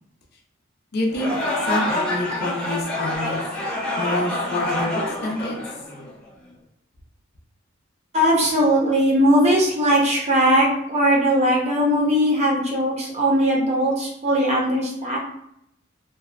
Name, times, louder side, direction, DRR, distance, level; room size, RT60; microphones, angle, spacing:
voice 1, 0.9-1.3 1.6-3.4 4.0-5.6, left 1 dB, 55° left, 0 dB, 0.5 m, -27 dB
sound 1, 1.1-6.3, left 1 dB, 5° left, 0.6 m, -27 dB
voice 2, 8.1-15.2, equal, 35° right, -3 dB, 0.7 m, -19 dB
2.6 x 2.2 x 2.3 m, 0.75 s
head